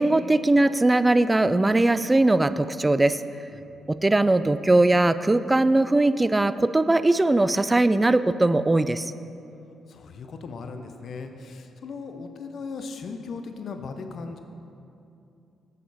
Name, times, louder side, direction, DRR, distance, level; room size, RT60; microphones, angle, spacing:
voice 1, 0.0-3.2 3.9-9.1, right 2 dB, 20° right, 14 dB, 0.3 m, -20 dB
voice 2, 3.5-3.9 9.9-14.4, left 4 dB, 60° left, 6 dB, 0.6 m, -38 dB
8.4 x 6.7 x 4.0 m, 2.7 s
supercardioid pair, 55°, 0 cm